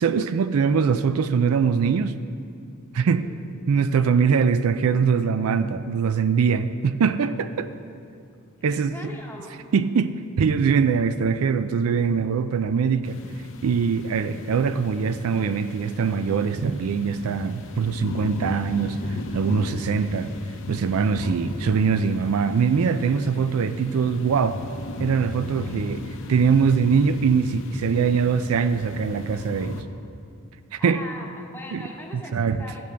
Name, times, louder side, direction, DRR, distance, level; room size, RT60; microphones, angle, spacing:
voice 1, 0.0-2.1 2.9-3.3 3.7-7.7 8.6-9.0 9.7-13.2 13.6-20.3 20.7-24.6 25.0-26.0 26.3-29.8 30.7-31.0 31.7-31.8 32.3-32.6, right 6 dB, 70° right, 12 dB, 0.4 m, -22 dB
voice 2, 3.0-3.4 8.7-9.7 25.5-25.9 30.8-32.9, left 1 dB, 10° left, 0 dB, 1.0 m, -41 dB
sound 1, 13.0-29.8, left 2 dB, 60° left, 0.7 m, -36 dB
13.5 x 5.3 x 6.7 m, 2.4 s
head